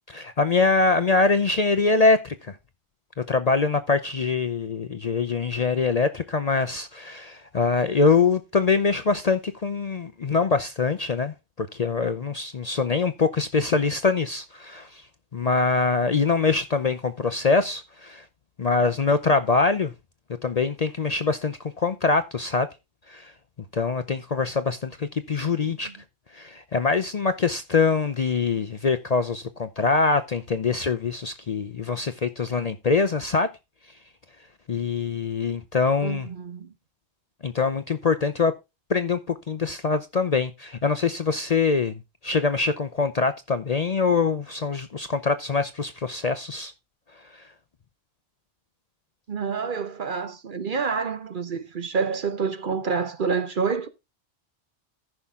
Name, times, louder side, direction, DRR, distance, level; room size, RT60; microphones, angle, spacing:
voice 1, 0.1-2.6 3.3-15.0 15.3-18.2 18.6-19.9 20.4-22.7 23.1-23.3 23.7-25.9 26.3-33.5 34.7-36.3 37.4-38.5 38.9-46.7 47.3-47.4, left 4 dB, 45° left, 0.6 m, -24 dB
voice 2, 36.0-36.7 49.3-53.9, right 5 dB, 50° right, 0.9 m, -28 dB
14.0 x 5.8 x 3.6 m
omnidirectional pair, 1.2 m